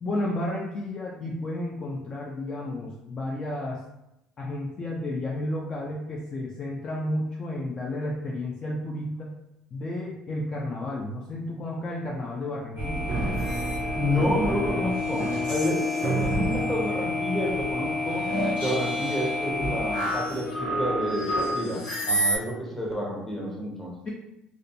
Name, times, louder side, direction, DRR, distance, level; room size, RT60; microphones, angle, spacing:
voice 1, 0.0-3.8 4.4-9.3 9.7-13.1 24.1-24.2, left 1 dB, 35° left, -2 dB, 0.4 m, -32 dB
sound 1, 12.8-22.4, left 1 dB, 85° left, 1.1 m, -28 dB
Piano, 13.1-21.5, right 3 dB, 45° right, 0.4 m, -37 dB
voice 2, 13.9-18.3 18.6-23.9, left 1 dB, 10° left, -3 dB, 0.8 m, -29 dB
2.5 x 2.1 x 2.6 m, 0.87 s
supercardioid pair, 100°, 2 cm